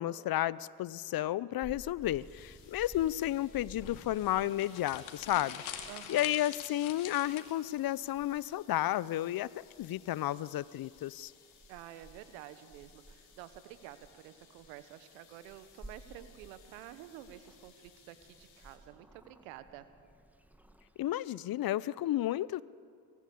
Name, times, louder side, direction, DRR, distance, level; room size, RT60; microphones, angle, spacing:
voice 1, 0.0-9.5 9.8-11.3 21.0-22.6, left 13 dB, 45° left, 21 dB, 0.6 m, -32 dB
Purr / Meow, 1.6-21.1, right 1 dB, 5° right, 1.5 m, -57 dB
sound 1, 2.0-18.8, left 8 dB, 85° left, 3.0 m, -63 dB
sound 2, 3.8-7.8, left 9 dB, 70° left, 2.3 m, -45 dB
voice 2, 5.9-6.3 11.7-19.9, right 12 dB, 80° right, 12 dB, 1.3 m, -50 dB
22.5 x 14.5 x 8.5 m, 2.2 s
hypercardioid pair, 60°, 49 cm